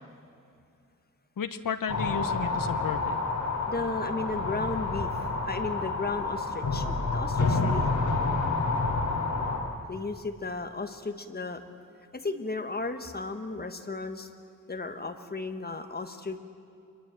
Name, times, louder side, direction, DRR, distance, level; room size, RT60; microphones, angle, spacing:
voice 1, 1.4-3.2 7.5-7.8, left 6 dB, 85° left, 9 dB, 1.0 m, -33 dB
sound 1, 1.9-9.6, left 3 dB, 60° left, 4.3 m, -29 dB
voice 2, 3.7-7.9 9.9-11.6 12.1-14.3 14.7-16.4, left 3 dB, 30° left, 7 dB, 1.4 m, -35 dB
26.5 x 22.0 x 7.6 m, 2.5 s
wide cardioid pair, 170°, 32 cm